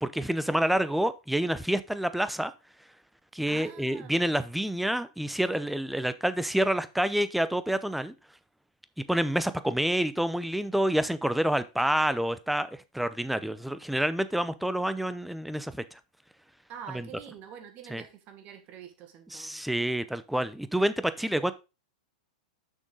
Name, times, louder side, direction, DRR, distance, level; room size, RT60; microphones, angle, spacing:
voice 1, 0.0-2.5 3.3-8.1 9.1-12.7 12.9-16.0 16.9-17.1 17.9-18.0 19.3-21.5, right 1 dB, ahead, 0.6 m, -28 dB
voice 2, 3.5-4.4 16.7-19.7, right 8 dB, 40° right, 1.7 m, -46 dB
6.3 x 6.2 x 3.8 m
hypercardioid pair, 110°, 4 cm